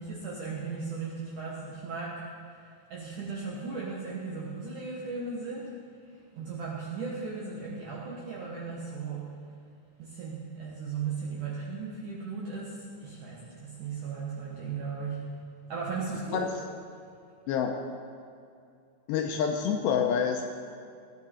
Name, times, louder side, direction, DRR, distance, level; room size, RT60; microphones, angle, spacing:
voice 1, 0.0-5.7 6.1-9.5 10.0-16.4, right 4 dB, 65° right, -4 dB, 2.0 m, -37 dB
voice 2, 17.5-17.8 19.1-20.4, left 7 dB, 80° left, 3 dB, 2.6 m, -27 dB
19.0 x 10.0 x 4.4 m, 2.3 s
omnidirectional pair, 5.5 m